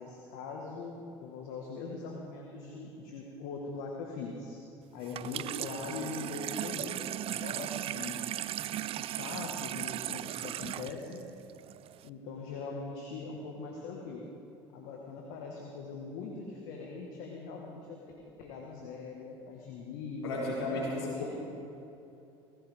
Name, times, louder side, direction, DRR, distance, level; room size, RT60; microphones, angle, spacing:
voice 1, 0.0-4.6 4.9-8.3 9.0-11.3 12.0-14.3 14.7-21.3, left 4 dB, 70° left, -1 dB, 1.7 m, -42 dB
Water tap faucet / Sink (filling or washing), 5.0-12.1, right 13 dB, 45° right, 0.4 m, -37 dB
voice 2, 20.2-21.3, left 2 dB, 85° left, -4 dB, 3.4 m, -33 dB
17.5 x 16.0 x 3.7 m, 2.9 s
hypercardioid pair, 70°, 13 cm